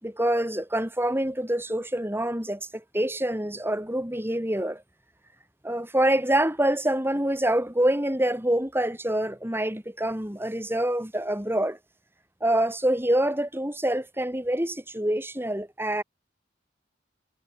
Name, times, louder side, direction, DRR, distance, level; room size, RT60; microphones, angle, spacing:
voice 1, 0.0-4.8 5.6-11.8 12.4-16.0, right 1 dB, 10° right, 5.0 m, -26 dB
head